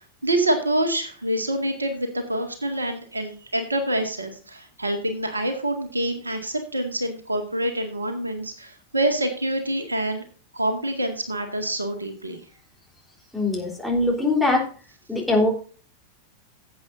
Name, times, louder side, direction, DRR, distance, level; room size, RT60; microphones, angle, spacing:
voice 1, 0.0-10.2 10.5-12.4, right 1 dB, 80° right, 7 dB, 1.9 m, -26 dB
voice 2, 13.3-14.7 15.1-15.5, left 2 dB, ahead, -2 dB, 3.7 m, -22 dB
17.0 x 8.2 x 2.6 m, 0.39 s
figure-of-eight pair, 90°, 0 cm